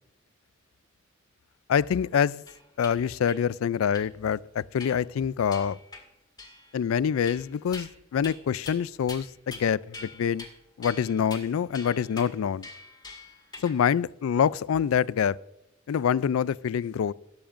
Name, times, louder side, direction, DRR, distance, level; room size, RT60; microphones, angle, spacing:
voice 1, 1.7-2.4 2.8-5.8 6.7-10.5 10.8-12.7 13.6-15.4 15.9-17.1, left 8 dB, 70° left, 0.3 m, -26 dB
sound 1, 2.5-2.9 3.3-3.4 3.9-4.1 4.8-5.1 5.5-6.0 6.4-6.8 7.2-7.9 8.2-8.4 8.7-8.8 9.1-9.7 9.9-10.5 10.8-13.8, left 3 dB, 20° left, 2.1 m, -44 dB
15.5 x 14.0 x 2.5 m
head